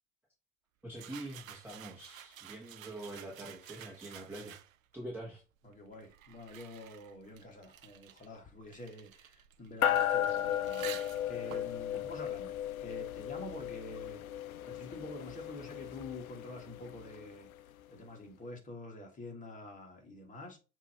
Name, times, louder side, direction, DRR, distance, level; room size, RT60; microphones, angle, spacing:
voice 1, 0.8-4.6 4.9-5.4 11.9-12.0, right 1 dB, 5° right, 1.7 m, -45 dB
sound 1, 0.9-4.9 5.7-13.1, right 10 dB, 70° right, 0.7 m, -51 dB
voice 2, 5.6-11.0 11.3-12.5 12.8-14.2 14.7-17.5 17.9-20.6, left 2 dB, 20° left, 1.9 m, -47 dB
sound 2, 9.8-17.5, left 10 dB, 75° left, 0.5 m, -35 dB
7.1 x 3.1 x 4.4 m
figure-of-eight pair, 85°, 42 cm